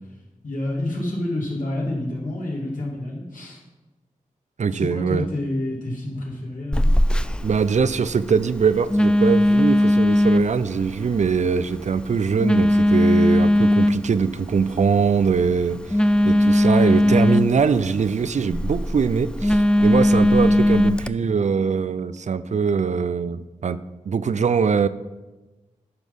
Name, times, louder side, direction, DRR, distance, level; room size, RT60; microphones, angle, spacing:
voice 1, 0.4-3.6 4.7-6.9, left 1 dB, 75° left, -4 dB, 2.3 m, -28 dB
voice 2, 4.6-5.3 7.4-16.0 16.2-23.8 24.1-24.9, right 5 dB, 60° right, 14 dB, 0.4 m, -22 dB
Telephone, 6.7-21.1, left 1 dB, 5° left, 0.4 m, -20 dB
11.0 x 4.1 x 5.3 m, 1.1 s
cardioid pair, 40°, 14 cm